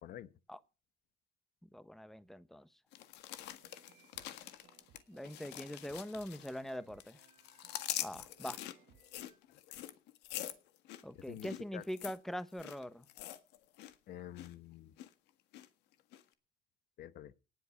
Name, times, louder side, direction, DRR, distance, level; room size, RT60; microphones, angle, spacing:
voice 1, 0.0-0.3 11.1-11.8 14.1-14.9 17.0-17.3, left 12 dB, 65° left, 1.0 m, -48 dB
voice 2, 1.7-2.7 5.1-7.2 8.0-8.6 11.0-13.1, equal, ahead, 1.1 m, -43 dB
sound 1, 2.9-6.7 7.0-13.9 14.2-14.5 15.0-15.7 16.1-16.2, left 13 dB, 90° left, 1.7 m, -45 dB
sound 2, 3.6-9.4, right 10 dB, 85° right, 3.0 m, -66 dB
18.5 x 9.5 x 5.8 m
cardioid pair, 110°, 17 cm